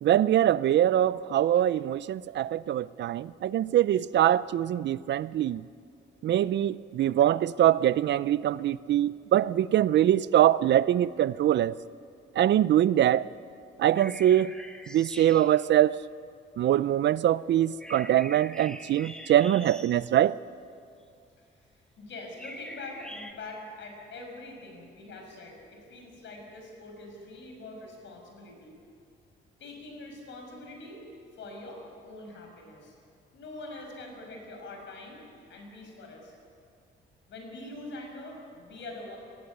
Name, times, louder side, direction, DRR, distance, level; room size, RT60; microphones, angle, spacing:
voice 1, 0.0-5.6 6.2-11.8 12.4-13.3 13.8-14.5 14.9-16.0 16.6-20.4, right 12 dB, 65° right, 0.5 m, -23 dB
sound 1, 13.9-15.6 17.8-20.2 22.4-23.3, equal, 5° left, 1.7 m, -44 dB
voice 2, 22.0-28.8 29.6-31.1 31.3-32.9 33.3-35.2 35.5-36.3 37.3-39.2, left 2 dB, 70° left, 5.9 m, -44 dB
19.0 x 15.0 x 9.8 m
cardioid pair, 90°, 20 cm